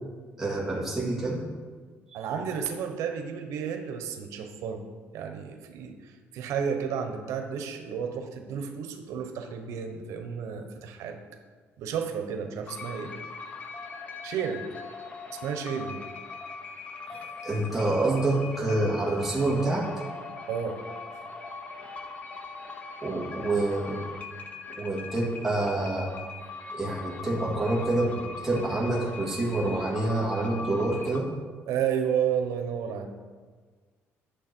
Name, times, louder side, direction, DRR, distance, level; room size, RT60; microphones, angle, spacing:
voice 1, 0.4-1.4 17.1-19.9 23.0-24.0 24.7-26.1 26.7-31.3, right 2 dB, 5° right, -5 dB, 2.0 m, -27 dB
voice 2, 2.1-4.9 5.1-11.2 11.8-13.1 14.2-14.7 15.3-16.0 20.5-20.8 31.7-33.1, right 7 dB, 85° right, 5 dB, 1.0 m, -32 dB
sound 1, 12.7-31.2, left 4 dB, 25° left, 0.8 m, -41 dB
11.5 x 7.0 x 4.5 m, 1.5 s
cardioid pair, 170°, 5 cm